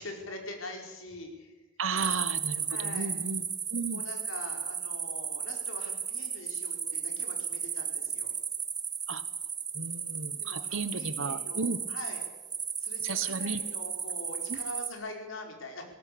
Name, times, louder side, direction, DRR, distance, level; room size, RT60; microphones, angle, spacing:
voice 1, 0.0-1.5 2.7-3.1 3.9-8.3 10.4-12.2 12.8-15.8, left 1 dB, 85° left, 3 dB, 4.9 m, -43 dB
voice 2, 1.8-3.4 3.7-4.0 9.1-9.2 9.7-11.8 13.0-13.6 14.5-14.6, right 4 dB, 80° right, 14 dB, 1.2 m, -34 dB
sound 1, 2.0-14.9, right 7 dB, 20° right, 1.4 m, -35 dB
19.0 x 18.0 x 8.7 m, 1.2 s
head